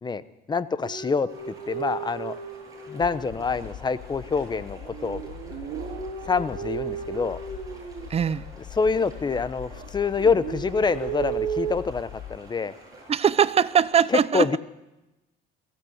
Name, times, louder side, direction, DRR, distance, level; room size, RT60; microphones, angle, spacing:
voice 1, 0.0-2.4 2.9-5.2 6.2-7.4 8.7-12.7 14.1-14.6, left 5 dB, 25° left, 14 dB, 1.0 m, -26 dB
sound 1, 0.8-3.7 4.3-8.5 8.9-9.9 10.2-11.7, right 8 dB, 80° right, 2.4 m, -35 dB
sound 2, 1.3-13.9, right 2 dB, 20° right, 8.0 m, -50 dB
sound 3, 3.0-12.4, left 12 dB, 60° left, 0.9 m, -42 dB
voice 2, 8.1-8.4 13.1-14.5, right 8 dB, 35° right, 16 dB, 0.8 m, -21 dB
22.5 x 15.5 x 8.0 m, 1.0 s
cardioid pair, 110°, 17 cm